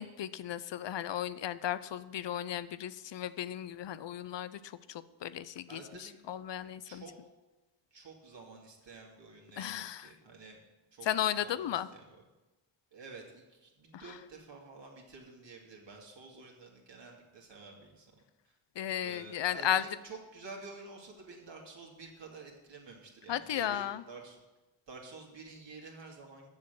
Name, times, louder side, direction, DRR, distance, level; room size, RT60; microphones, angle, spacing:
voice 1, 0.0-7.0 9.6-10.1 11.0-11.9 13.9-14.0 18.8-19.8 23.3-24.0, left 11 dB, 60° left, 15 dB, 0.6 m, -35 dB
voice 2, 5.7-6.2 6.9-7.1 7.9-10.6 10.9-11.1 11.4-12.2 12.9-18.2 18.4-18.6 19.0-24.4 24.9-26.5, right 3 dB, 60° right, -1 dB, 2.5 m, -50 dB
7.2 x 6.6 x 7.9 m, 1.1 s
cardioid pair, 55°, 49 cm